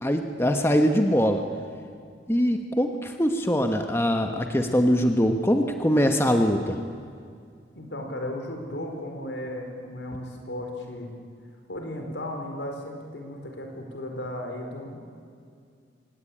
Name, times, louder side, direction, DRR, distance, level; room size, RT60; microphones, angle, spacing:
voice 1, 0.0-1.4 2.3-6.8, equal, 15° left, 5 dB, 1.3 m, -22 dB
voice 2, 7.7-11.1 11.7-15.0, left 1 dB, 80° left, 3 dB, 4.8 m, -35 dB
25.5 x 19.5 x 8.8 m, 2.3 s
head